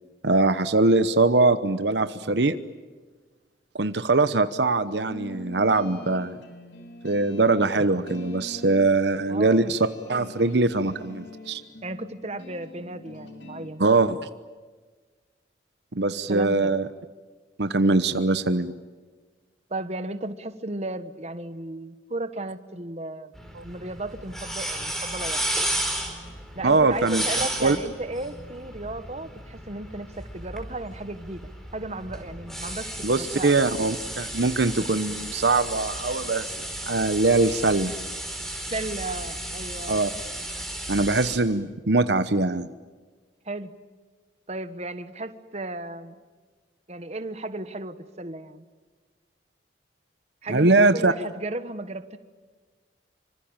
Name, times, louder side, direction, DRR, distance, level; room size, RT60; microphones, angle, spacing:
voice 1, 0.2-2.6 3.7-6.4 7.0-9.8 10.1-11.6 13.8-14.2 15.9-16.9 17.6-18.7 23.5-23.6 26.6-27.2 27.6-27.8 33.0-36.5 36.9-37.9 39.9-40.1 40.9-42.7 50.5-51.1, right 3 dB, 65° right, 11 dB, 1.0 m, -22 dB
sound 1, 4.9-13.7, left 1 dB, 75° left, 4.3 m, -43 dB
voice 2, 9.3-9.7 11.8-13.8 16.3-16.7 19.7-23.3 23.6-25.6 26.5-31.4 31.7-33.6 38.7-40.0 43.5-43.7 44.5-46.2 46.9-48.7 50.4-52.2, right 2 dB, 35° right, 11 dB, 1.4 m, -34 dB
sound 2, 23.3-41.4, right 1 dB, ahead, 4.3 m, -33 dB
26.0 x 25.5 x 9.0 m, 1.4 s
head